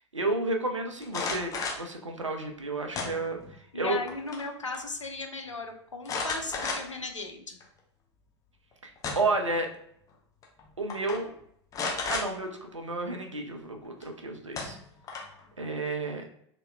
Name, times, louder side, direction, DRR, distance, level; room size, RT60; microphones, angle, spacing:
voice 1, 0.1-1.5 1.8-4.0 8.8-9.7 10.8-11.3 12.1-14.8 15.6-16.2, right 2 dB, 85° right, 3 dB, 0.5 m, -31 dB
sound 1, 1.0-1.9 2.9-3.5 3.9-4.5 4.7-4.8 6.0-7.1 7.6-7.7 8.7-9.4 10.4-10.6 10.9-11.2 11.7-12.3 14.0-14.1 14.5-15.4, left 4 dB, 20° left, 0.6 m, -33 dB
voice 2, 3.7-7.6, left 3 dB, 85° left, 4 dB, 0.4 m, -36 dB
2.8 x 2.1 x 3.2 m, 0.70 s
figure-of-eight pair, 85°, 15 cm